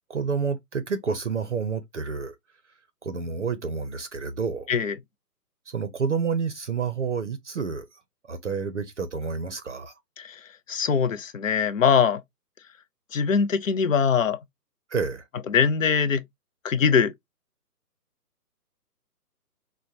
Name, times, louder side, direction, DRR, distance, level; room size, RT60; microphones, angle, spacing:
voice 1, 0.1-2.3 3.0-4.7 5.7-7.8 8.3-9.9 14.9-15.2, right 5 dB, 50° right, 0.6 m, -29 dB
voice 2, 10.7-12.2 13.1-14.4 15.5-16.2 16.6-17.1, left 6 dB, 55° left, 0.5 m, -22 dB
4.5 x 2.1 x 2.6 m
hypercardioid pair, 160°, 48 cm